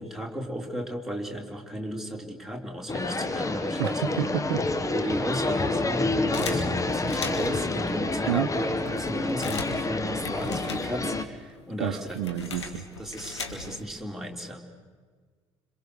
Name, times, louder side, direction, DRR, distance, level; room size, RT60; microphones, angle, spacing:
voice 1, 0.0-4.3 4.9-12.3 13.0-14.6, equal, ahead, 1 dB, 3.9 m, -34 dB
sound 1, 2.9-11.3, left 2 dB, 25° left, 1.7 m, -28 dB
voice 2, 3.8-4.7 6.5-6.6 8.3-8.5 11.8-12.8, right 11 dB, 65° right, 10 dB, 0.9 m, -29 dB
sound 2, 6.3-7.7 8.3-8.4 8.6-11.3 11.5-13.9, left 4 dB, 80° left, 1.8 m, -38 dB
26.5 x 24.0 x 6.5 m, 1.5 s
figure-of-eight pair, 55°, 14 cm